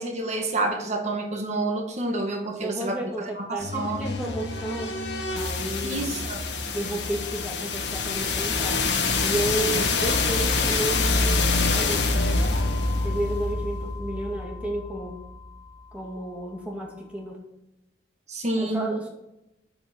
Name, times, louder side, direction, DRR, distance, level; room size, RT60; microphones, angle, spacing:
voice 1, 0.0-3.0 3.4-4.1 5.8-6.4 18.3-18.9, right 2 dB, 40° right, 3 dB, 1.7 m, -28 dB
voice 2, 2.6-5.0 5.3-6.2 6.7-8.8 9.2-12.1 13.0-15.2 15.9-17.4 18.6-19.1, right 1 dB, 5° right, -2 dB, 2.2 m, -32 dB
sound 1, 3.6-15.5, left 3 dB, 65° left, 1.6 m, -26 dB
9.9 x 7.9 x 6.1 m, 0.86 s
head